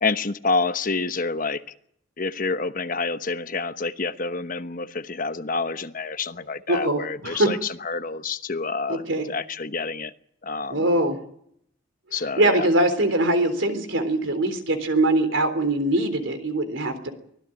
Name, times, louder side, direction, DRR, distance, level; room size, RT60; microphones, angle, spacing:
voice 1, 0.0-1.6 2.2-10.1 10.4-10.8 12.1-12.7, left 4 dB, 45° left, 10 dB, 1.1 m, -28 dB
voice 2, 6.7-7.5 8.9-9.3 10.7-11.2 12.4-17.1, right 1 dB, 80° right, 8 dB, 3.6 m, -22 dB
24.0 x 17.0 x 9.0 m, 0.71 s
head